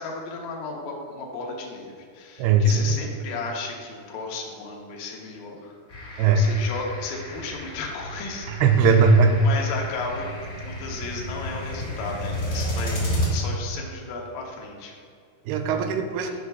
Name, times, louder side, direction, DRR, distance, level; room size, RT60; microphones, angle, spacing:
voice 1, 0.0-5.8 6.0-8.5 9.4-10.3 10.6-14.9 16.2-16.3, left 3 dB, 85° left, -1 dB, 1.6 m, -34 dB
voice 2, 2.4-3.0 6.2-6.4 8.5-9.4 15.5-16.3, right 4 dB, 80° right, 6 dB, 2.5 m, -19 dB
sound 1, 5.9-13.3, equal, 55° left, 1.1 m, -32 dB
9.3 x 3.4 x 5.5 m, 2.2 s
omnidirectional pair, 4.7 m